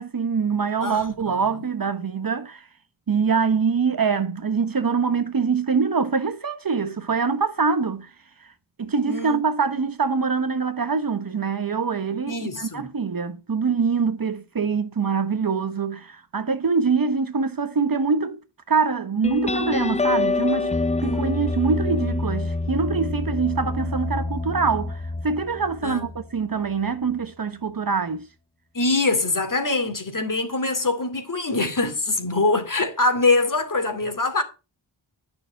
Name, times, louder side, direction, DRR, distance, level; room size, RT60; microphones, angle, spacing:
voice 1, 0.0-2.7 3.1-8.1 8.8-18.4 18.7-20.7 21.0-28.3, right 5 dB, 45° right, 1.1 m, -24 dB
voice 2, 0.8-1.7 9.1-9.4 12.3-12.9 21.0-21.4 25.8-26.1 28.7-34.4, left 3 dB, 40° left, 2.7 m, -24 dB
sound 1, 19.2-26.4, left 3 dB, 15° left, 0.5 m, -26 dB
9.9 x 6.7 x 5.7 m
wide cardioid pair, 70°, 47 cm